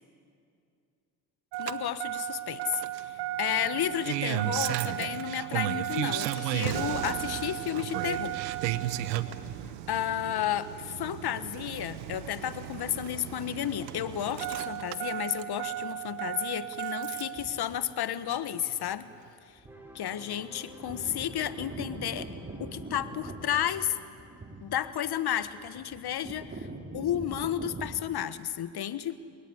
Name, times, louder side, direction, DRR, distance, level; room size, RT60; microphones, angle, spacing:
Engine starting, 1.5-17.4 18.7-18.8, right 14 dB, 85° right, 1.1 m, -34 dB
voice 1, 1.6-2.8 3.4-8.4 9.9-19.1 19.9-22.3 22.6-24.0 24.6-26.7 26.9-29.1, left 10 dB, 50° left, 13 dB, 1.4 m, -32 dB
sound 1, 17.3-17.8 18.9-19.0 19.6-19.9 20.2-20.3 20.6-28.0, right 2 dB, 20° right, 3.2 m, -42 dB
sound 2, 19.7-24.6, equal, 5° right, 6.3 m, -50 dB
29.0 x 18.0 x 9.9 m, 2.4 s
hypercardioid pair, 65°, 49 cm